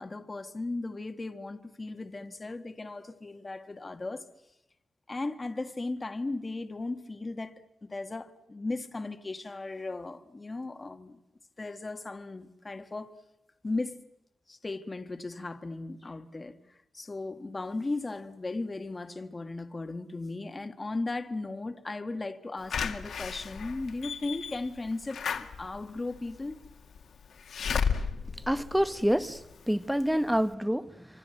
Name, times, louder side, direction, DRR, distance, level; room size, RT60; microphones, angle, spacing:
voice 1, 0.0-4.3 5.1-11.2 11.6-13.2 13.6-14.0 14.5-16.6 16.9-26.6, left 2 dB, 25° left, 1.6 m, -36 dB
Slam / Alarm, 22.7-29.5 30.0-30.1 30.3-30.4, left 6 dB, 75° left, 2.1 m, -34 dB
voice 2, 28.4-31.1, equal, ahead, 1.0 m, -27 dB
27.5 x 26.0 x 7.8 m
wide cardioid pair, 155°, 0 cm